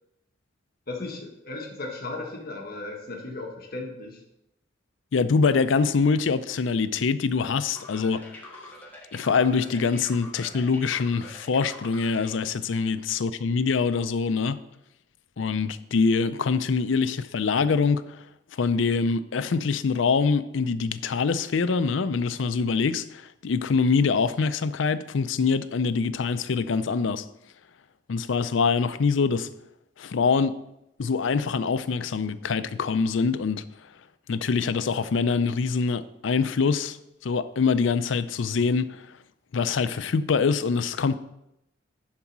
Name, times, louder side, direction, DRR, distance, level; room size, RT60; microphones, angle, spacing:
voice 1, 0.9-4.2, left 2 dB, 55° left, 1.4 m, -36 dB
voice 2, 5.1-8.4 9.1-14.6 15.4-18.0 18.6-27.2 28.1-29.5 30.0-30.6 31.0-33.6 34.3-37.0 37.2-39.0 39.5-41.2, left 5 dB, 75° left, 0.5 m, -24 dB
sound 1, 7.7-12.4, left 1 dB, 10° left, 1.6 m, -44 dB
11.0 x 4.1 x 6.0 m
head